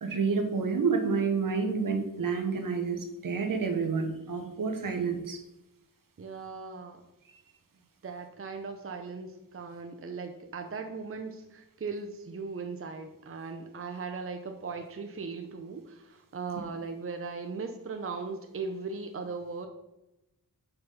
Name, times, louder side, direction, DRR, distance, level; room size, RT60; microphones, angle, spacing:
voice 1, 0.0-5.4, right 5 dB, 70° right, 6 dB, 1.2 m, -29 dB
voice 2, 6.2-7.0 8.0-19.7, right 4 dB, 40° right, 5 dB, 0.7 m, -38 dB
5.8 x 5.6 x 5.6 m, 0.91 s
wide cardioid pair, 135°, 34 cm